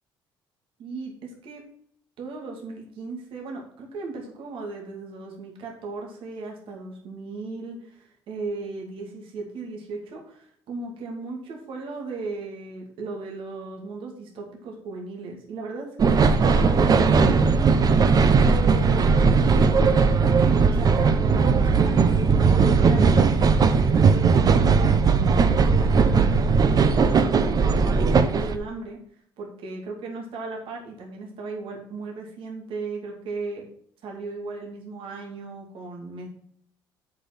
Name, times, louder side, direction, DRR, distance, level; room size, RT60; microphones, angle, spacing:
voice 1, 0.8-1.6 2.2-17.7 18.0-22.1 22.5-29.0 29.4-33.7 34.0-36.3, right 3 dB, 65° right, 0 dB, 2.6 m, -36 dB
sound 1, 16.0-28.6, right 5 dB, 40° right, 1.0 m, -18 dB
7.6 x 5.7 x 6.0 m, 0.64 s
cardioid pair, 95°, 10 cm